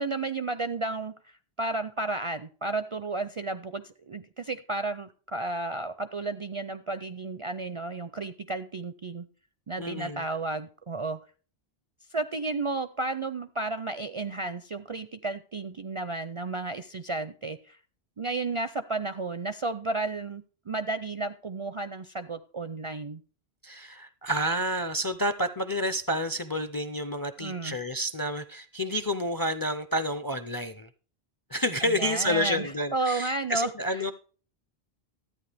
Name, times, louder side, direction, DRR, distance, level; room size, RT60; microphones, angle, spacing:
voice 1, 0.0-9.3 9.7-11.2 12.1-17.8 18.2-23.2 27.4-27.8 31.8-33.7 34.0-34.1, right 3 dB, 45° right, 10 dB, 0.4 m, -32 dB
voice 2, 9.8-10.2 23.6-30.9 31.5-34.1, equal, 30° left, 11 dB, 0.4 m, -29 dB
13.5 x 9.1 x 3.4 m, 0.38 s
omnidirectional pair, 1.1 m